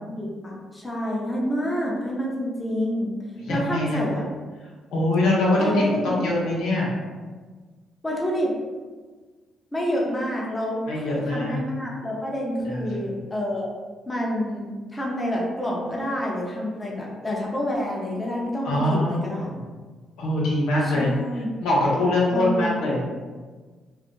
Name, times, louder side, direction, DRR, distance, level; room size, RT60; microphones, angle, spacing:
voice 1, 0.1-3.1 3.5-4.2 5.6-6.2 8.0-8.5 9.7-13.7 14.1-19.5 20.8-21.5 22.3-22.8, equal, 15° left, -3 dB, 0.7 m, -28 dB
voice 2, 3.5-4.0 4.9-6.9 10.9-11.6 12.6-13.0 18.6-19.2 19.5-19.6 20.2-21.1 21.6-23.0, left 1 dB, 85° left, -5 dB, 0.8 m, -23 dB
2.4 x 2.1 x 3.7 m, 1.4 s
cardioid pair, 90°, 0 cm